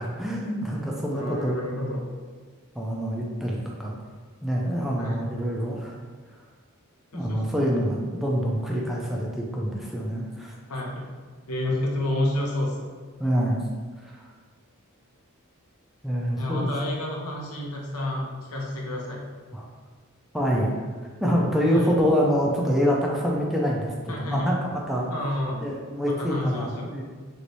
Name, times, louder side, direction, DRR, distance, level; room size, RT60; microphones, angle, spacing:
voice 1, 0.0-1.5 2.7-3.9 4.4-5.9 7.1-10.5 13.2-13.6 14.0-14.2 16.0-16.7 19.5-19.7 20.3-20.8 21.2-25.1 25.6-27.0, equal, ahead, -3 dB, 0.4 m, -26 dB
voice 2, 1.1-2.0 5.0-5.2 7.1-7.4 10.7-10.9 11.5-12.9 16.4-19.2 21.7-21.9 24.1-24.5 25.1-25.8 26.1-26.9, left 1 dB, 90° left, -2 dB, 0.7 m, -29 dB
3.1 x 3.1 x 2.6 m, 1.5 s
head